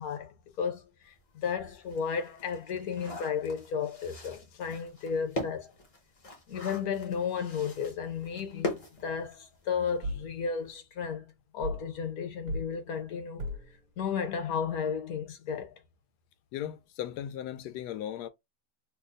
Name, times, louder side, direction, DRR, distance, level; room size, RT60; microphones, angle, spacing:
voice 1, 0.0-5.7 6.5-11.2 11.5-13.5 14.0-15.7, left 6 dB, 70° left, 1.3 m, -33 dB
sound 1, 1.1-1.2 1.7-9.7 10.0-10.1 10.4-10.7, left 2 dB, 40° left, 0.5 m, -41 dB
sound 2, 10.0-10.3 11.6-11.9 12.5-12.7 13.4-13.7, equal, 85° right, 1.1 m, -35 dB
voice 2, 16.5-18.3, left 11 dB, 90° left, 1.1 m, -37 dB
3.0 x 2.0 x 3.8 m
omnidirectional pair, 1.7 m